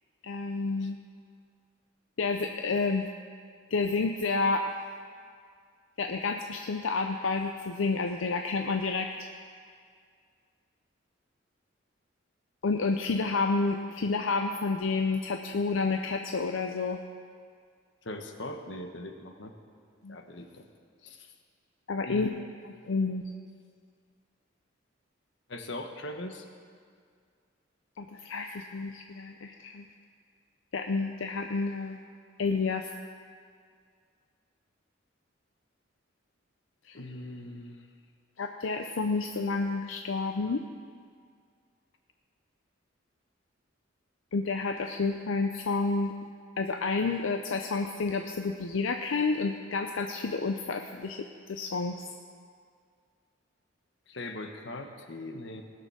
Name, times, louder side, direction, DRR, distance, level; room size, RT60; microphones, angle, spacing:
voice 1, 0.2-1.0 2.2-3.1 3.7-4.7 6.0-9.1 12.6-17.0 20.0-20.2 21.9-22.3 22.9-23.2 28.0-29.8 30.7-32.0 32.4-32.9 36.9-37.0 38.4-40.6 44.3-46.1 46.6-52.0, left 4 dB, 85° left, 4 dB, 0.6 m, -30 dB
voice 2, 18.0-19.5 20.1-20.6 21.0-21.3 22.0-22.4 25.5-26.5 36.9-37.9 54.1-55.6, left 1 dB, 65° left, 5 dB, 1.1 m, -40 dB
19.0 x 6.7 x 6.2 m, 2.1 s
head